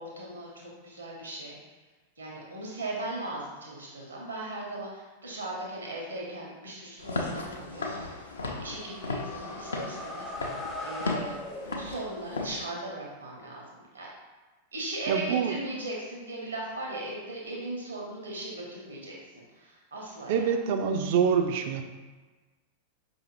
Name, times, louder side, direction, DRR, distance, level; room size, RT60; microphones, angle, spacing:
voice 1, 0.0-1.6 2.2-11.4 11.7-14.1 14.7-20.5, right 2 dB, 75° right, -2 dB, 1.0 m, -38 dB
Walk footsteps / Siren, 7.0-12.6, left 2 dB, 70° left, 0.5 m, -36 dB
sound 1, 8.6-12.3, left 1 dB, 5° left, 0.5 m, -40 dB
voice 2, 15.1-15.5 20.3-21.8, right 7 dB, 50° right, 5 dB, 0.4 m, -25 dB
5.0 x 2.7 x 2.9 m, 1.2 s
figure-of-eight pair, 90°, 0 cm